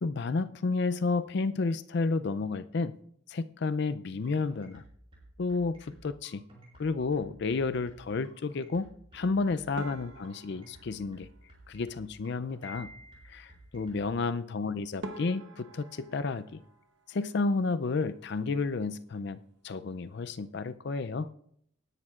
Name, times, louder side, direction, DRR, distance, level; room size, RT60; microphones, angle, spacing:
voice 1, 0.0-2.9 3.3-4.8 5.4-6.4 6.8-8.9 9.1-11.3 11.7-12.9 13.3-16.6 17.1-21.3, left 4 dB, 50° left, 13 dB, 0.4 m, -31 dB
sound 1, 4.2-14.0, right 2 dB, 25° right, 4.7 m, -55 dB
sound 2, 9.8-12.2 14.5-14.6 15.0-17.8 18.0-18.8 19.1-19.3 19.6-19.7 20.4-20.7, right 1 dB, 55° right, 1.0 m, -47 dB
Piano, 12.6-13.7, left 2 dB, 20° left, 1.7 m, -48 dB
18.5 x 10.5 x 2.4 m, 0.67 s
head